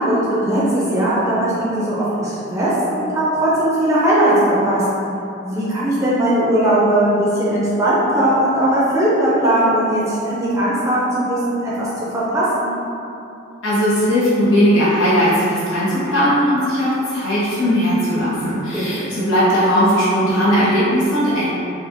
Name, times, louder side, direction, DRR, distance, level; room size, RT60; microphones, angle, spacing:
voice 1, 0.0-4.8 5.4-11.9 12.1-12.7 18.7-19.0, right 1 dB, 15° right, -9 dB, 0.5 m, -18 dB
voice 2, 13.6-21.4, equal, 85° left, -11 dB, 1.1 m, -17 dB
4.1 x 2.4 x 2.8 m, 2.7 s
head